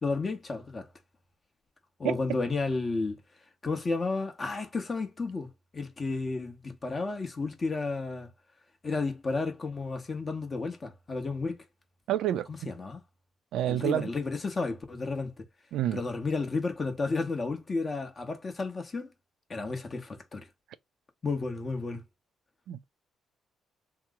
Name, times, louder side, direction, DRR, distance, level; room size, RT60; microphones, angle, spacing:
voice 1, 0.0-0.9 2.0-3.2 3.6-8.3 8.8-11.6 12.5-13.0 13.7-15.4 15.9-19.1 19.5-20.5 21.2-22.0, left 3 dB, 35° left, 0.9 m, -32 dB
voice 2, 12.1-12.7 13.5-14.1 15.7-16.0 22.7-22.8, right 11 dB, 80° right, 0.4 m, -29 dB
2.9 x 2.0 x 3.5 m
cardioid pair, 90°, 0 cm